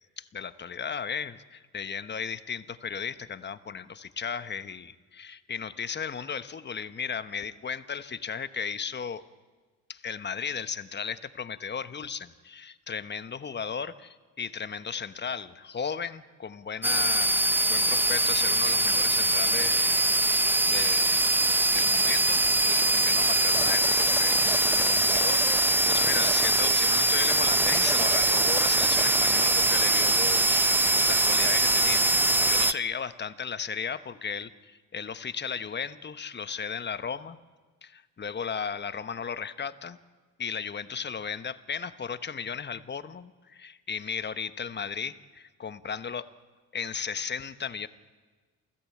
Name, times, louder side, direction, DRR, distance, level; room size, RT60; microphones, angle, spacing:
voice 1, 0.2-9.2 9.9-21.3 21.7-25.4 25.8-37.4 37.8-40.0 40.4-46.3 46.7-47.9, left 6 dB, 35° left, 12 dB, 1.1 m, -35 dB
sound 1, 16.8-32.7, right 2 dB, 5° right, 0.6 m, -23 dB
28.0 x 15.5 x 8.6 m, 1.4 s
cardioid pair, 90°, 30 cm